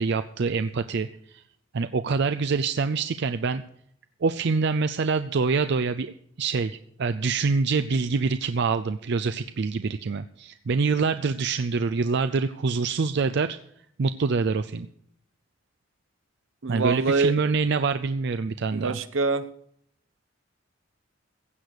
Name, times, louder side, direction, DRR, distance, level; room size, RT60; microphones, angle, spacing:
voice 1, 0.0-1.4 1.7-3.6 4.2-6.1 6.4-13.6 14.0-14.9 16.7-19.0, right 4 dB, 60° right, 10 dB, 0.5 m, -25 dB
voice 2, 16.6-17.3 18.7-19.5, right 4 dB, 80° right, 12 dB, 1.0 m, -24 dB
15.5 x 8.1 x 6.6 m, 0.68 s
head